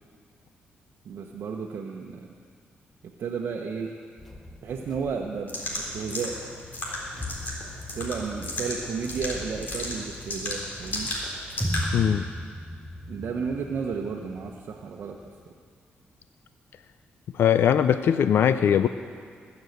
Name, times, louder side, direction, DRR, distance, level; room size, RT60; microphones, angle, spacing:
voice 1, 1.0-2.3 3.0-3.9 4.6-6.4 7.9-11.1 13.1-15.2, right 5 dB, 65° right, 0 dB, 1.0 m, -33 dB
sound 1, 4.2-15.4, equal, 5° left, 0.9 m, -39 dB
sound 2, 5.5-12.0, left 1 dB, 50° left, 3.8 m, -34 dB
voice 2, 11.9-12.2 17.3-18.9, left 9 dB, 70° left, 11 dB, 0.4 m, -20 dB
20.5 x 7.2 x 8.1 m, 2.1 s
cardioid pair, 105°, 4 cm